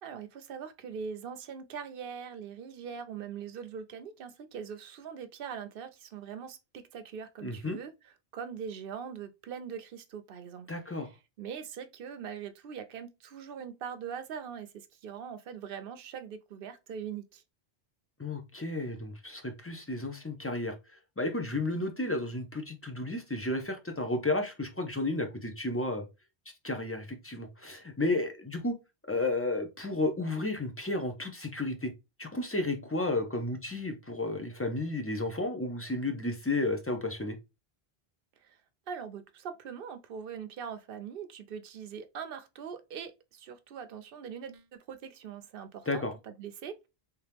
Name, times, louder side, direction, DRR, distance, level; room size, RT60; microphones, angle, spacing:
voice 1, 0.0-11.0 11.4-17.4 38.4-38.6 38.9-46.9, right 7 dB, 65° right, 0.7 m, -42 dB
voice 2, 7.4-7.8 10.7-11.1 18.2-20.7 21.2-26.1 26.6-28.8 29.1-31.9 32.2-37.4 45.9-46.1, left 2 dB, 20° left, 0.4 m, -32 dB
3.5 x 2.9 x 3.3 m
omnidirectional pair, 1.0 m